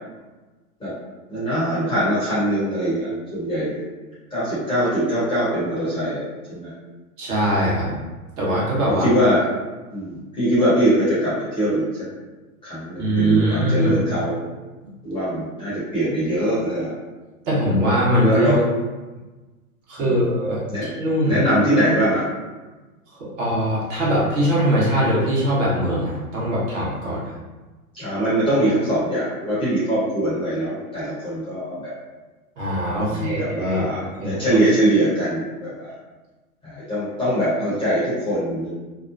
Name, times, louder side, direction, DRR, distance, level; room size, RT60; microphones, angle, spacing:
voice 1, 1.3-3.8 4.3-6.2 6.5-6.7 9.0-9.4 9.9-12.0 12.6-14.4 15.0-16.9 18.2-18.6 20.1-20.2 20.7-20.9 21.3-22.2 27.9-31.9 33.0-35.9 36.6-38.7, right 1 dB, 10° left, -10 dB, 1.0 m, -22 dB
voice 2, 7.2-8.0 8.4-9.1 13.0-14.0 17.4-18.6 19.9-21.4 23.4-27.2 32.6-33.9 34.2-34.4, equal, 50° right, -7 dB, 1.3 m, -21 dB
2.9 x 2.2 x 2.5 m, 1.2 s
hypercardioid pair, 120°, 45 cm